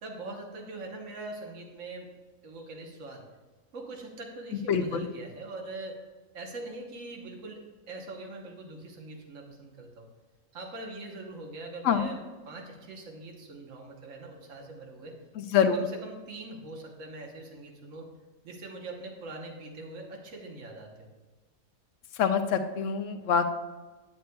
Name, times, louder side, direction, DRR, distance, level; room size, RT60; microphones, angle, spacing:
voice 1, 0.0-2.1 2.4-3.2 3.7-6.0 6.3-7.6 7.9-10.1 10.5-12.2 12.5-15.1 15.7-18.1 18.4-21.1, right 2 dB, 75° right, 0 dB, 1.4 m, -42 dB
voice 2, 4.7-5.0 11.8-12.1 15.4-15.8 22.2-23.5, left 7 dB, 70° left, 8 dB, 1.0 m, -25 dB
10.5 x 7.9 x 2.3 m, 1.2 s
omnidirectional pair, 1.4 m